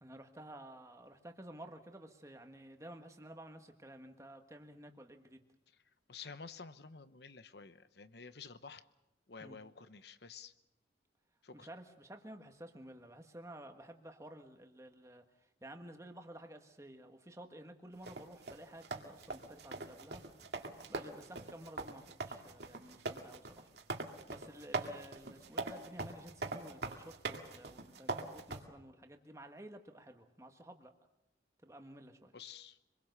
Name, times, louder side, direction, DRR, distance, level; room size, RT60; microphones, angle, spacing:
voice 1, 0.0-5.4 9.4-9.6 11.5-20.2 20.9-23.7 24.3-30.9 31.6-32.3, right 1 dB, 15° right, 5 dB, 1.5 m, -53 dB
voice 2, 6.1-8.8 9.3-10.5 11.4-11.7 32.3-32.8, left 5 dB, 60° left, 13 dB, 1.0 m, -51 dB
sound 1, 18.1-28.6, right 3 dB, 60° right, 2.2 m, -42 dB
26.0 x 21.5 x 6.7 m, 0.93 s
head